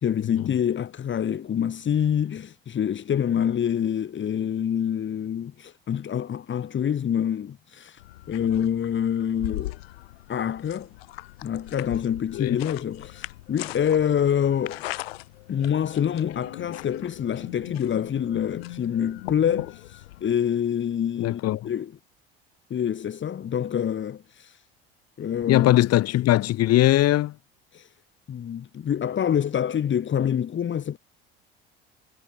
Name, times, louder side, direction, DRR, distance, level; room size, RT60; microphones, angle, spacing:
voice 1, 0.0-8.0 8.3-9.8 10.3-10.9 11.4-14.8 15.5-21.9 22.7-24.6 25.2-25.8 27.7-27.9 28.3-31.0, left 9 dB, 40° left, 3.3 m, -26 dB
sound 1, 8.0-20.4, left 18 dB, 80° left, 6.4 m, -39 dB
voice 2, 21.2-21.7 25.5-27.4, left 15 dB, 55° left, 3.4 m, -20 dB
hypercardioid pair, 75°, 30 cm